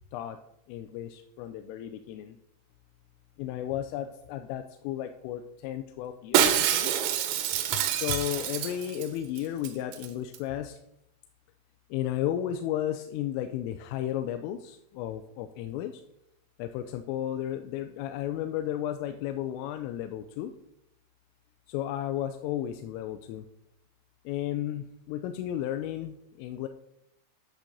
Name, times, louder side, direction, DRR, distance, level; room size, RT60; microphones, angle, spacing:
voice 1, 0.7-2.4 3.4-6.9 7.7-10.8 11.9-16.0 16.6-20.5 21.7-23.5 24.3-26.7, left 11 dB, 85° left, 7 dB, 3.2 m, -33 dB
Shatter, 6.3-9.1 9.4-9.5 9.6-10.1 10.3-10.4, right 10 dB, 90° right, 3.7 m, -26 dB
8.9 x 6.9 x 6.5 m, 0.79 s
omnidirectional pair, 5.9 m